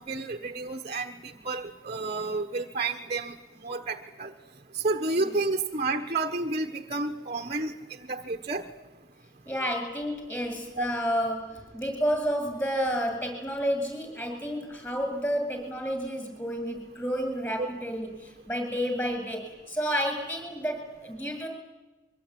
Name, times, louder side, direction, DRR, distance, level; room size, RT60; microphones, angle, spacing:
voice 1, 0.0-3.3 3.6-4.3 4.7-7.7 8.1-8.6 10.8-10.9 17.6-17.7, right 3 dB, 30° right, 5 dB, 1.2 m, -30 dB
voice 2, 9.4-21.5, equal, 10° left, 5 dB, 7.7 m, -30 dB
24.0 x 24.0 x 9.8 m, 1.1 s
head